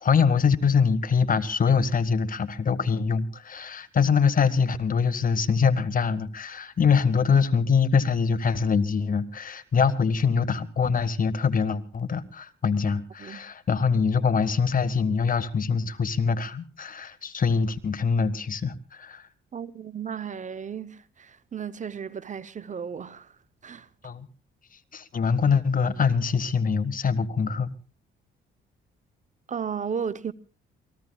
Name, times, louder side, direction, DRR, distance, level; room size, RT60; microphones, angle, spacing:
voice 1, 0.0-19.3 24.0-24.3 24.9-27.7, left 5 dB, 45° left, 1.6 m, -24 dB
voice 2, 19.5-23.4 23.6-23.9 29.5-30.3, right 7 dB, 40° right, 0.8 m, -34 dB
28.5 x 20.5 x 2.3 m
cardioid pair, 90°, 20 cm